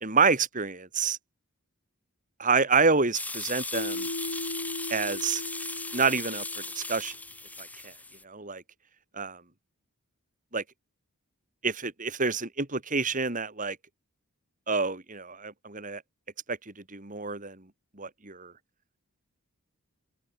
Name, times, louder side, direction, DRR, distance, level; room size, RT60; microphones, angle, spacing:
voice 1, 0.0-1.2 2.4-4.1 4.9-5.4 5.9-6.4 6.7-7.1 7.6-7.9 8.2-8.6 9.2-9.4 10.5-10.6 11.6-13.8 14.7-16.0 16.5-16.6 16.9-17.6 18.0-18.5, right 4 dB, 35° right, 3.3 m, -27 dB
sound 1, 3.1-8.2, left 2 dB, 5° left, 4.6 m, -37 dB
Mallet percussion, 3.7-7.0, left 2 dB, 75° left, 2.0 m, -37 dB
open air
head